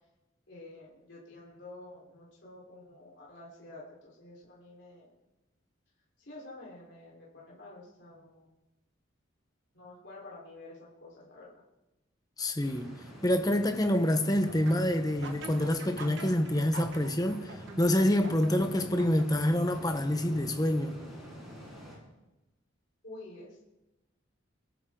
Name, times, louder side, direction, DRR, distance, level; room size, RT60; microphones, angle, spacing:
voice 1, 0.5-5.1 6.2-8.5 9.7-11.6 23.0-23.6, left 2 dB, 60° left, 4.3 m, -49 dB
voice 2, 12.4-12.9 13.2-21.0, left 1 dB, 20° left, 1.1 m, -27 dB
sound 1, 12.6-22.0, equal, ahead, 7.1 m, -47 dB
sound 2, 14.5-20.4, right 2 dB, 60° right, 1.5 m, -45 dB
23.0 x 14.5 x 3.9 m
head